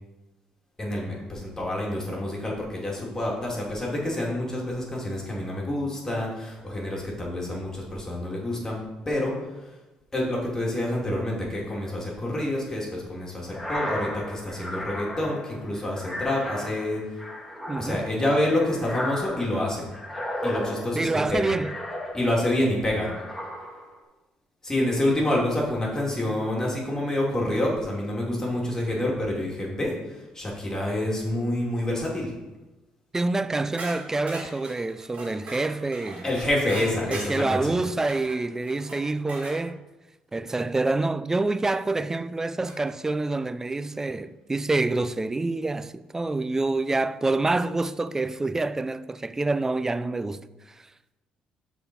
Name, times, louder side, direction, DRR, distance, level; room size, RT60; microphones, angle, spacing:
voice 1, 0.8-9.5 10.1-17.2 17.8-19.9 20.4-21.5 22.1-23.1 24.6-32.3 36.2-37.8, left 1 dB, 20° left, 2.5 m, -27 dB
sound 1, 13.5-22.6 23.0-24.0, left 1 dB, 5° left, 1.6 m, -35 dB
voice 2, 17.7-18.1 20.9-21.7 33.1-36.2 37.1-39.8 40.3-50.5, right 2 dB, 20° right, 0.3 m, -27 dB
sound 2, 33.8-39.6 41.6-41.7 42.7-43.1, right 2 dB, 60° right, 2.3 m, -40 dB
6.8 x 4.1 x 5.9 m
supercardioid pair, 75°, 3 cm